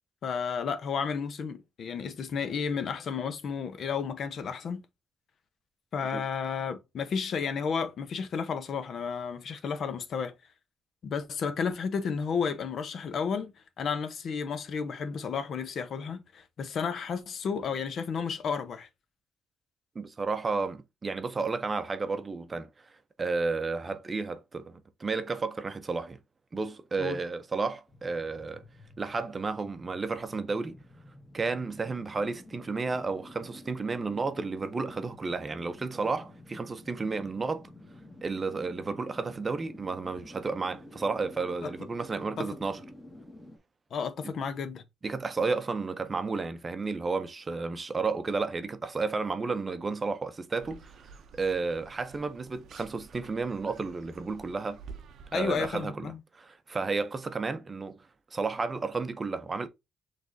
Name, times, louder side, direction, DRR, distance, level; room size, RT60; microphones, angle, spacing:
voice 1, 0.2-4.8 5.9-10.3 11.0-18.9 27.0-27.2 41.6-41.7 42.4-42.5 43.9-44.8 55.3-56.2, left 6 dB, 60° left, 0.7 m, -32 dB
voice 2, 19.9-22.7 23.2-26.2 26.5-28.6 29.0-30.8 31.3-37.7 38.2-42.8 44.2-44.3 45.0-51.1 51.3-54.8 55.3-58.0 58.3-59.7, right 4 dB, 30° right, 0.6 m, -32 dB
sound 1, 27.9-43.6, left 1 dB, 20° left, 1.4 m, -50 dB
sound 2, 50.6-55.8, right 5 dB, 70° right, 0.6 m, -50 dB
6.0 x 3.2 x 2.6 m
cardioid pair, 90°, 0 cm